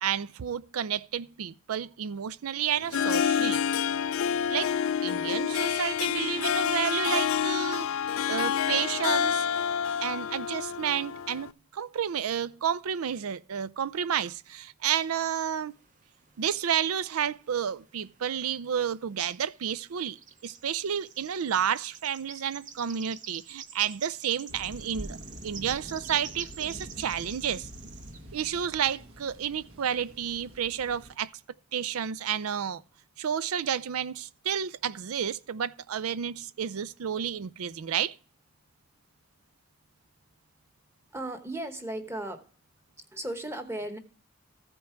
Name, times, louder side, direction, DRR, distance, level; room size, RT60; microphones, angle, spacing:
voice 1, 0.0-3.6 4.5-4.7 5.0-7.9 8.3-9.5 10.0-15.7 16.4-20.2 20.4-25.2 25.4-27.7 28.3-31.3 31.7-32.8 33.2-38.2, right 8 dB, 90° right, 0.5 m, -31 dB
Harp, 2.8-11.5, left 8 dB, 75° left, 0.4 m, -28 dB
sound 1, 15.1-16.7 17.0-18.3 18.6-18.8 19.4-28.2, right 6 dB, 35° right, 0.8 m, -47 dB
Thunder, 24.5-31.2, equal, 70° right, 1.4 m, -45 dB
voice 2, 41.1-42.5 43.0-44.0, right 1 dB, 10° right, 1.0 m, -36 dB
15.0 x 5.3 x 4.5 m
head